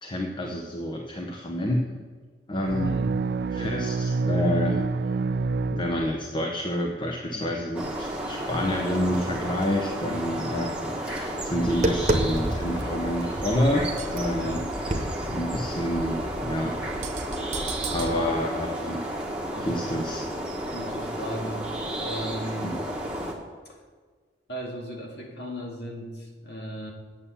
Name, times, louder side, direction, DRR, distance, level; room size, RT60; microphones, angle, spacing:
voice 1, 0.0-1.8 2.5-3.0 3.5-4.8 5.7-16.8 17.1-17.2 17.9-19.0 19.6-20.2 22.6-22.8, left 1 dB, 25° left, 1 dB, 0.7 m, -28 dB
sound 1, 2.7-6.5, right 4 dB, 60° right, 0.3 m, -27 dB
voice 2, 2.8-3.1 7.3-7.5 10.0-10.2 14.4-14.7 18.0-18.3 19.5-19.9 20.7-21.7 22.0-22.8 23.7-23.8 24.5-26.9, equal, 65° left, -1 dB, 2.1 m, -37 dB
sound 2, 7.7-23.3, right 1 dB, 5° right, 1.3 m, -32 dB
Tap, 11.4-18.1, right 1 dB, 40° right, 1.1 m, -32 dB
9.2 x 7.0 x 7.0 m, 1.5 s
head